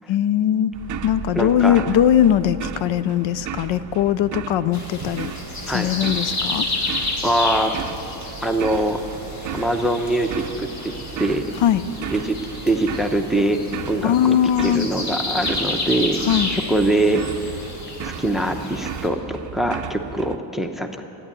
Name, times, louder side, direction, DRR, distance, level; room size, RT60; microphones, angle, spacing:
voice 1, 0.1-0.7 1.0-5.3 5.7-6.7 11.6-11.8 14.0-14.9 16.3-16.5, left 10 dB, 65° left, 14 dB, 0.6 m, -20 dB
sound 1, 0.7-20.4, right 9 dB, 40° right, 0.6 m, -35 dB
voice 2, 1.3-1.8 5.7-5.9 7.2-7.7 8.4-9.0 9.5-10.9 11.2-11.4 12.1-12.4 12.6-13.6 13.9-14.4 14.6-16.2 16.5-17.6 18.0-21.0, right 1 dB, ahead, 6 dB, 0.7 m, -23 dB
sound 2, 4.7-19.1, left 2 dB, 35° left, 1.9 m, -31 dB
13.5 x 10.0 x 9.7 m, 2.9 s
cardioid pair, 145°, 49 cm